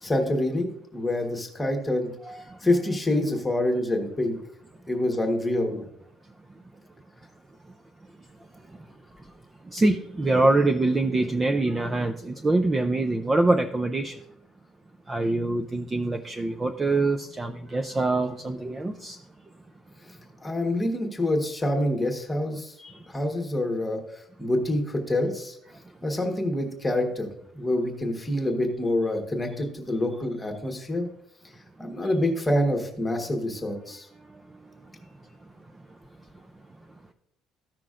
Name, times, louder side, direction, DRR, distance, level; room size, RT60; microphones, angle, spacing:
voice 1, 0.0-2.1 2.6-4.4 4.9-5.8 20.4-22.7 23.1-25.6 26.0-31.1 31.8-34.1, left 1 dB, 10° left, 3 dB, 1.2 m, -26 dB
voice 2, 2.2-2.6 9.7-14.2 15.1-19.2 22.8-23.0, right 2 dB, 15° right, 5 dB, 0.4 m, -24 dB
14.0 x 5.9 x 2.4 m, 0.71 s
cardioid pair, 170°, 0 cm